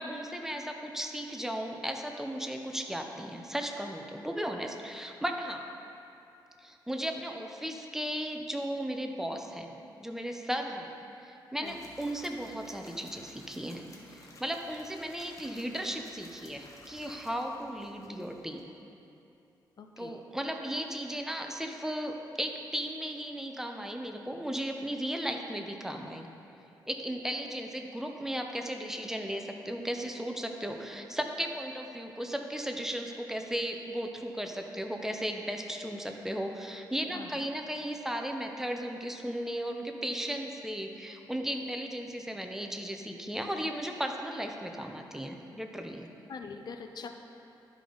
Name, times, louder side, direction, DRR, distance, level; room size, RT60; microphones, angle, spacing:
voice 1, 0.0-5.6 6.6-9.7 10.0-10.9 11.2-18.6 20.0-26.3 26.9-46.1, equal, 5° right, 3 dB, 0.7 m, -36 dB
sound 1, 11.6-18.6, left 2 dB, 40° left, 1.1 m, -55 dB
voice 2, 19.8-20.2 37.1-37.5 46.3-47.1, left 5 dB, 55° left, 6 dB, 0.5 m, -43 dB
12.0 x 5.1 x 3.9 m, 2.7 s
cardioid pair, 85°, 8 cm